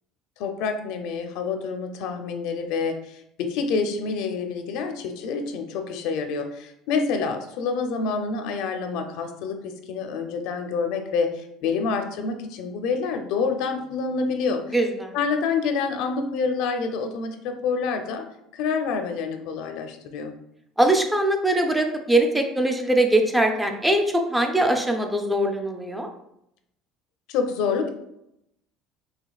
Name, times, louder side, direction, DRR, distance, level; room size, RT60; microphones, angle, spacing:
voice 1, 0.4-14.7 15.1-18.2 18.5-20.3 27.3-27.9, left 5 dB, 70° left, 5 dB, 0.5 m, -27 dB
voice 2, 14.7-15.2 20.8-26.1, right 1 dB, 5° right, 3 dB, 0.4 m, -22 dB
5.0 x 3.1 x 2.3 m, 0.80 s
cardioid pair, 160°, 0 cm